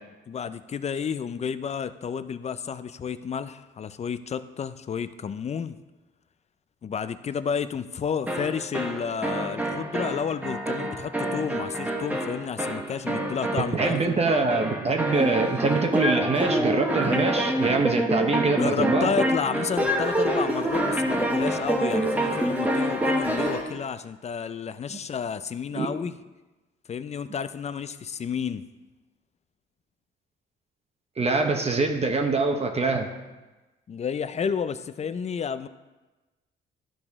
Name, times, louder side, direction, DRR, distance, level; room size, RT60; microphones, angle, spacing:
voice 1, 0.3-5.8 6.8-14.2 18.6-26.1 26.9-28.6 33.9-35.7, left 6 dB, 35° left, 13 dB, 0.4 m, -31 dB
sound 1, 8.3-23.7, right 1 dB, 10° right, 1.1 m, -27 dB
voice 2, 13.7-19.1 24.9-25.0 25.7-25.9 31.2-33.1, right 3 dB, 30° right, 3 dB, 0.9 m, -24 dB
12.0 x 4.9 x 3.6 m, 1.1 s
cardioid pair, 90°, 20 cm